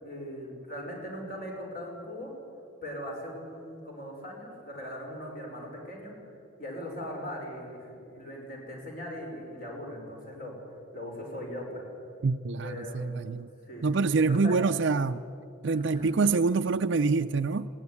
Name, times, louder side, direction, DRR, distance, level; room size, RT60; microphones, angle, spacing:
voice 1, 0.0-2.3 2.8-6.1 6.6-10.6 10.9-11.8 12.6-13.3 13.7-14.0 14.3-14.6 15.7-16.2, equal, 45° left, 0 dB, 5.3 m, -40 dB
voice 2, 12.2-13.5 13.8-15.2 15.6-17.7, right 4 dB, 60° right, 7 dB, 0.5 m, -26 dB
21.0 x 17.0 x 9.7 m, 2.7 s
head